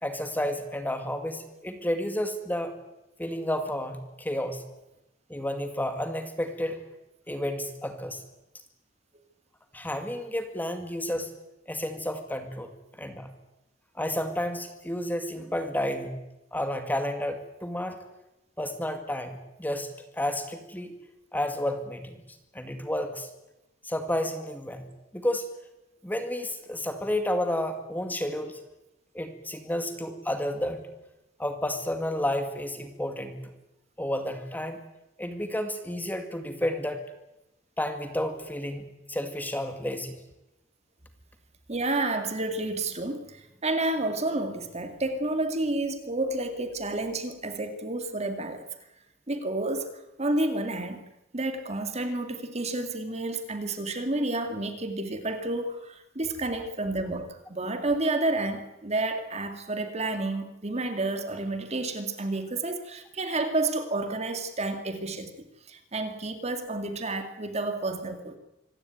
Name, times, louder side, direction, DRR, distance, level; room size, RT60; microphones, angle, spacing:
voice 1, 0.0-2.7 3.2-4.6 5.3-6.8 7.3-8.2 9.7-11.3 11.7-13.3 14.0-16.2 16.5-18.0 18.6-20.9 21.3-22.2 22.5-23.3 23.8-24.9 25.1-25.5 26.0-28.6 29.1-30.8 31.4-33.5 34.0-34.8 35.2-37.0 37.8-38.8 39.1-40.1, left 1 dB, 10° left, 7 dB, 2.1 m, -31 dB
voice 2, 41.7-48.7 49.3-49.9 50.2-51.0 51.3-65.3 65.7-68.4, right 2 dB, 35° right, 7 dB, 2.1 m, -30 dB
25.5 x 16.0 x 9.3 m, 0.94 s
head